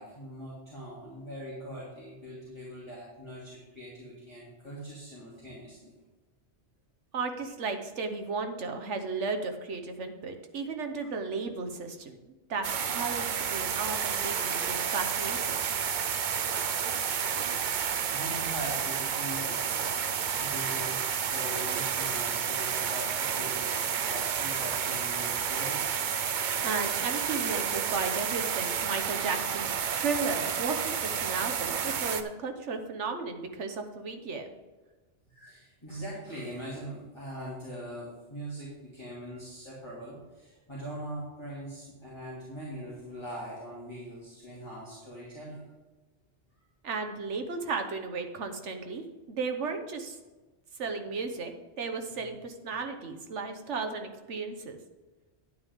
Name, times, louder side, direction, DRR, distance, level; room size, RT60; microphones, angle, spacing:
voice 1, 0.0-5.9 18.1-26.2 35.3-45.6, equal, 25° left, -8 dB, 2.8 m, -42 dB
voice 2, 7.1-12.7 12.9-15.6 26.6-34.5 46.8-50.2 50.8-54.8, right 4 dB, 90° right, 5 dB, 1.4 m, -34 dB
sound 1, 12.6-32.2, right 7 dB, 50° right, 0.6 m, -30 dB
11.0 x 8.7 x 3.6 m, 1.2 s
omnidirectional pair, 1.2 m